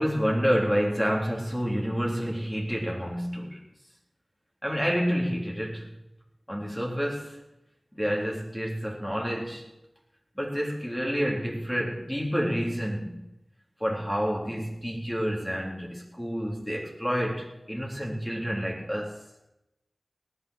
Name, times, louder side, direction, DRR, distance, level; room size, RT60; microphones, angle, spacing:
voice 1, 0.0-3.6 4.6-5.9 6.5-7.4 7.9-9.6 10.4-13.2 13.8-19.2, equal, 10° left, -2 dB, 3.8 m, -29 dB
18.5 x 9.9 x 6.6 m, 0.91 s
wide cardioid pair, 45°, 0 cm